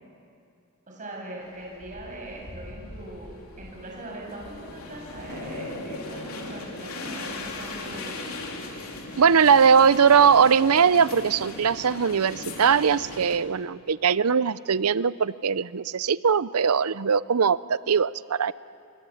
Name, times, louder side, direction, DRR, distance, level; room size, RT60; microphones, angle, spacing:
voice 1, 0.9-8.2, right 1 dB, 35° right, -2 dB, 6.8 m, -40 dB
sound 1, 1.5-13.4, left 2 dB, 75° left, 3.6 m, -38 dB
voice 2, 9.2-18.5, right 6 dB, 85° right, 18 dB, 0.6 m, -20 dB
28.0 x 24.0 x 8.6 m, 2.4 s
head